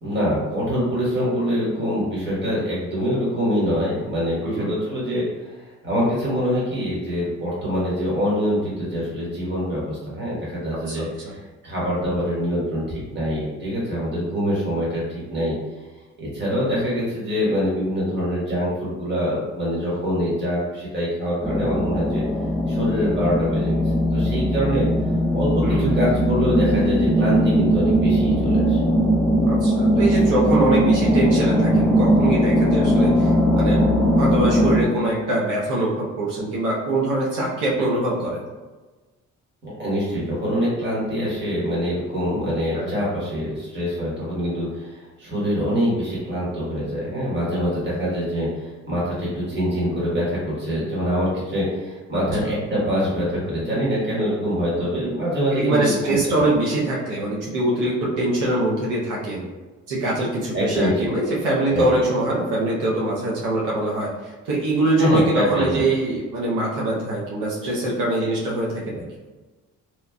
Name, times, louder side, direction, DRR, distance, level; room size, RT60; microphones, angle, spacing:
voice 1, 0.0-5.2 5.8-11.4 11.6-15.5 16.2-22.2 22.7-23.8 24.1-24.9 25.3-28.8 39.6-56.2 60.5-61.1 61.7-62.0 65.0-65.8, equal, 35° right, -7 dB, 1.4 m, -24 dB
sound 1, 21.4-34.8, equal, 5° left, 0.4 m, -19 dB
voice 2, 29.4-33.8 34.2-38.4 42.7-43.0 52.1-52.6 55.5-59.5 59.9-69.0, right 1 dB, 85° right, -5 dB, 0.7 m, -23 dB
3.0 x 2.5 x 2.2 m, 1.3 s
cardioid pair, 90°, 30 cm